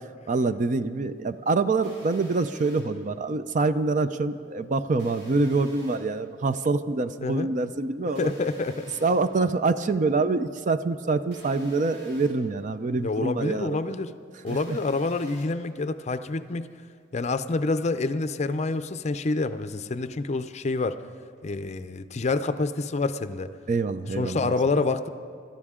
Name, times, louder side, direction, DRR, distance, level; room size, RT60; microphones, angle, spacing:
voice 1, 0.3-8.3 9.0-13.8 14.5-14.8 23.7-24.5, right 3 dB, 45° right, 11 dB, 0.5 m, -25 dB
CD Walkman - No Disc (Edit), 1.8-2.8 5.0-6.0 8.1-9.1 11.3-12.3 14.5-15.4, equal, 65° right, 4.8 m, -49 dB
voice 2, 7.2-7.5 8.2-8.9 13.0-14.1 14.4-16.7 17.1-21.0 21.4-23.5 24.2-25.1, left 3 dB, 40° left, 12 dB, 0.5 m, -27 dB
26.5 x 13.0 x 3.7 m, 2.3 s
head